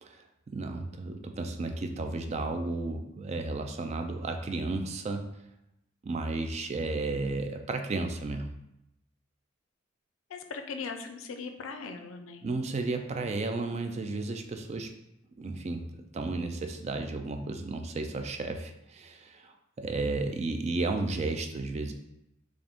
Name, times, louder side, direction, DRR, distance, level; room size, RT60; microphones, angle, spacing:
voice 1, 0.0-5.3 6.0-8.5 12.4-14.9 15.4-21.9, right 3 dB, 35° right, 6 dB, 0.3 m, -33 dB
voice 2, 10.3-12.5, left 5 dB, 85° left, 6 dB, 0.4 m, -39 dB
3.8 x 2.5 x 3.5 m, 0.85 s
head